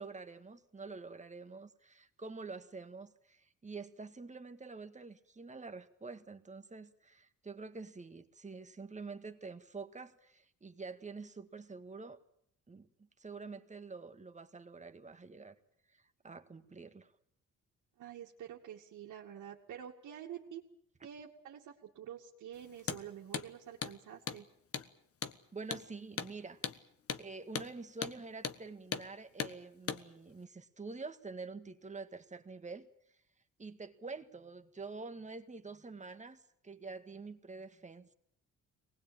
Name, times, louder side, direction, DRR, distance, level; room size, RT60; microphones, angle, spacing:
voice 1, 0.0-12.2 12.7-12.9 13.2-15.6 16.2-17.1 25.5-26.6 27.2-32.9 33.6-38.1, right 4 dB, 25° right, 8 dB, 1.8 m, -47 dB
voice 2, 18.0-20.6 21.0-24.5, right 9 dB, 75° right, -3 dB, 2.5 m, -48 dB
Hammer, 22.8-23.0 23.3-23.5 23.8-24.0 24.3-24.4 24.7-24.9 25.2-25.4 25.7-25.9 26.2-26.3 26.6-26.8 27.1-27.2 27.5-27.7 28.0-28.2 28.4-28.6 28.9-29.1 29.4-29.5 29.9-30.0, left 7 dB, 50° left, 1.4 m, -38 dB
23.0 x 20.0 x 8.9 m, 0.69 s
cardioid pair, 90°, 30 cm